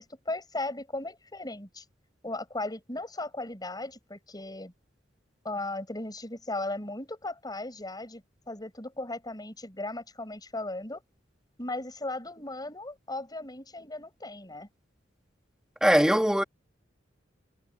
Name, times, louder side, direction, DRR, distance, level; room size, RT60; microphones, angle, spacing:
voice 1, 0.0-1.8 2.2-4.7 5.4-11.0 11.6-14.7, left 2 dB, 20° left, 6.5 m, -37 dB
voice 2, 15.8-16.4, equal, 5° right, 2.6 m, -21 dB
head